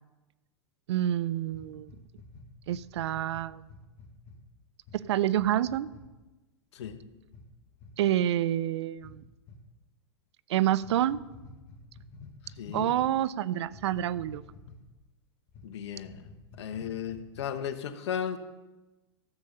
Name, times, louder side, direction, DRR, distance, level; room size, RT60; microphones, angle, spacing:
voice 1, 0.9-1.9 2.7-3.7 4.9-5.9 8.0-9.2 10.5-11.2 12.7-14.4, right 12 dB, 70° right, 19 dB, 0.4 m, -28 dB
sound 1, 1.5-4.4 4.8-5.0 5.3-6.1 6.8-7.0 7.3-7.5 7.7-7.9 9.0-9.6 10.8-13.1 13.6-15.0 15.5-15.7 16.0-17.6, left 3 dB, 50° left, 1.9 m, -50 dB
voice 2, 12.6-13.0 15.6-16.2 16.6-18.4, left 8 dB, 75° left, 11 dB, 1.0 m, -35 dB
13.5 x 7.2 x 5.4 m, 1.1 s
hypercardioid pair, 115°, 15 cm